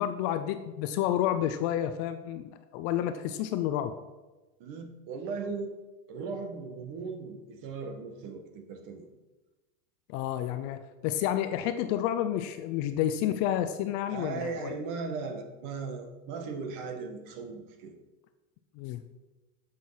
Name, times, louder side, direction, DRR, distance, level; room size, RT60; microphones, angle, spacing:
voice 1, 0.0-3.9 10.1-14.7 18.8-19.0, left 11 dB, 40° left, 10 dB, 0.5 m, -30 dB
voice 2, 4.6-5.7 6.1-9.1 14.1-17.9, right 4 dB, 40° right, 5 dB, 1.7 m, -37 dB
7.6 x 7.4 x 5.8 m, 1.2 s
supercardioid pair, 130°, 46 cm